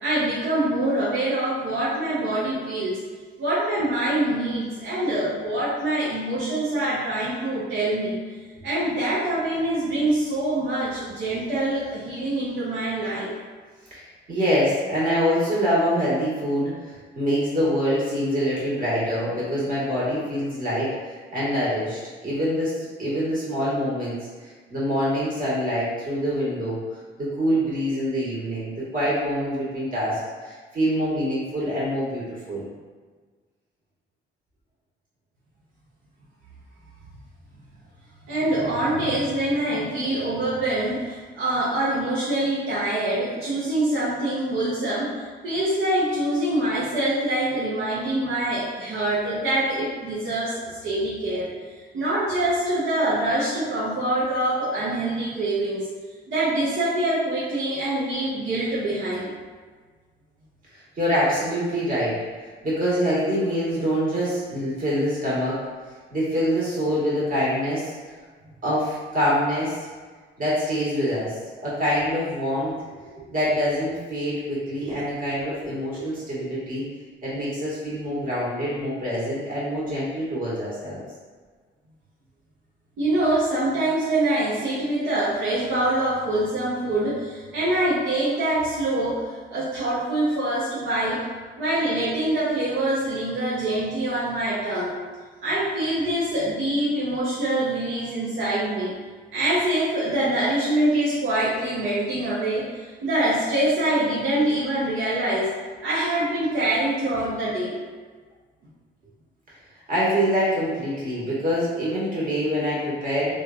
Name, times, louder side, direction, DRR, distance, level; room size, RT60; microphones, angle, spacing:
voice 1, 0.0-3.0 3.4-8.2 8.6-13.3 38.3-51.5 51.9-55.9 56.3-59.3 83.0-91.2 91.6-94.9 95.4-98.9 99.3-105.5 105.8-107.8, right 1 dB, 85° right, -9 dB, 0.8 m, -25 dB
voice 2, 13.9-24.2 24.4-26.8 27.2-32.7 61.0-65.6 66.1-67.9 68.6-69.7 70.4-76.8 77.2-81.0 109.9-113.4, equal, 45° right, -8 dB, 1.4 m, -25 dB
3.1 x 2.4 x 2.3 m, 1.5 s
cardioid pair, 90°, 20 cm